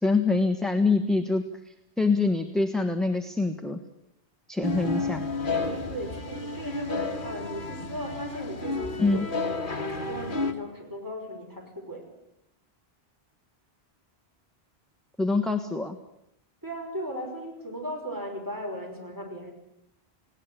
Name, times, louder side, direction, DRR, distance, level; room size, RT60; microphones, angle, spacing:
voice 1, 0.0-3.8 4.5-5.2 9.0-9.3 15.2-16.0, left 3 dB, ahead, 6 dB, 1.3 m, -25 dB
sound 1, 4.6-10.5, left 3 dB, 50° left, 2.0 m, -31 dB
voice 2, 4.8-5.4 5.9-12.1 16.6-19.5, equal, 20° right, 0 dB, 5.7 m, -37 dB
19.5 x 18.0 x 9.9 m, 0.78 s
omnidirectional pair, 1.1 m